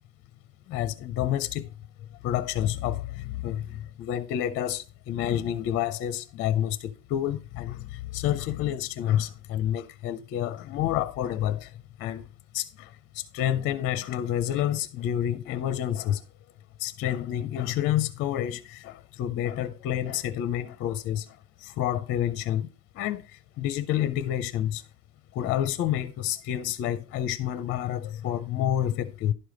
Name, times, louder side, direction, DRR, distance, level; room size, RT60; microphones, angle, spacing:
voice 1, 0.7-1.7 2.2-12.3 12.5-16.2 16.8-22.7 22.9-24.8 25.3-29.3, left 11 dB, 30° left, 0.5 m, -29 dB
11.0 x 4.9 x 5.0 m
cardioid pair, 155°, 39 cm